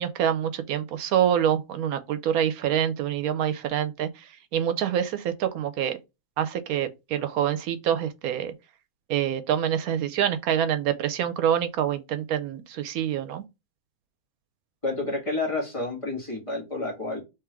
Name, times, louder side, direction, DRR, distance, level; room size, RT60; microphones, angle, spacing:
voice 1, 0.0-6.0 6.4-8.5 9.1-13.4, right 9 dB, 80° right, 1.1 m, -26 dB
voice 2, 14.8-17.2, left 2 dB, 25° left, 1.5 m, -29 dB
3.6 x 3.2 x 4.5 m
omnidirectional pair, 1.5 m